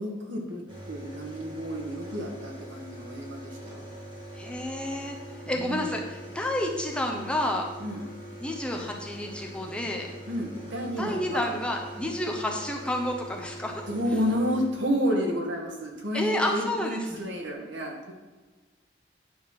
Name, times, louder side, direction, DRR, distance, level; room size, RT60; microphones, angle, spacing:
voice 1, 0.0-3.8 5.4-5.9 7.8-8.0 10.3-11.5 13.9-18.1, equal, 80° right, 1 dB, 1.6 m, -31 dB
sound 1, 0.7-15.3 16.6-16.7 16.9-17.3, right 1 dB, 25° right, 2.3 m, -43 dB
voice 2, 4.3-5.2 5.5-6.0 6.3-7.7 8.4-10.1 11.0-13.8 16.1-17.2, left 1 dB, 5° left, 1 dB, 0.8 m, -30 dB
9.5 x 4.2 x 5.7 m, 1.3 s
head